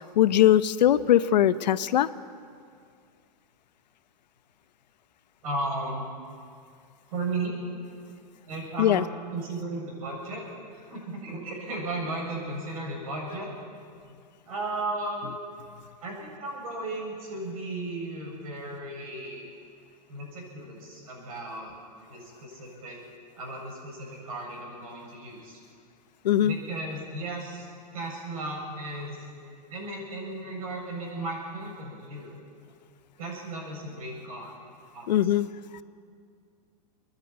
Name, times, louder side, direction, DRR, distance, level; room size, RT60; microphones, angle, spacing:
voice 1, 0.2-2.1 8.8-9.0 26.2-26.6 35.1-35.5, left 11 dB, 90° left, 14 dB, 0.8 m, -20 dB
voice 2, 5.4-6.1 7.1-7.6 8.5-10.4 10.9-13.5 14.5-15.3 16.0-19.5 20.1-21.7 22.1-23.0 23.4-25.6 26.4-27.7 27.9-29.3 29.7-32.3 33.2-34.6 34.9-35.5, right 2 dB, 55° right, -1 dB, 7.5 m, -35 dB
26.0 x 10.5 x 9.5 m, 2.3 s
supercardioid pair, 180°, 21 cm